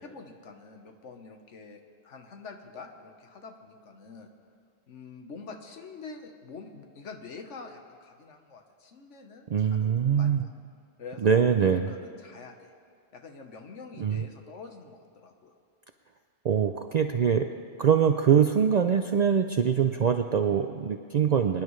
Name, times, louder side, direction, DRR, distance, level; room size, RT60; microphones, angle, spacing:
voice 1, 0.0-4.3 4.9-10.5 11.0-12.7 13.1-15.6, left 4 dB, 85° left, 4 dB, 1.4 m, -46 dB
voice 2, 9.5-10.4 11.2-11.9 14.0-14.2 16.4-17.5 17.8-21.6, right 7 dB, 65° right, 6 dB, 0.4 m, -23 dB
24.5 x 10.5 x 3.2 m, 2.3 s
omnidirectional pair, 1.2 m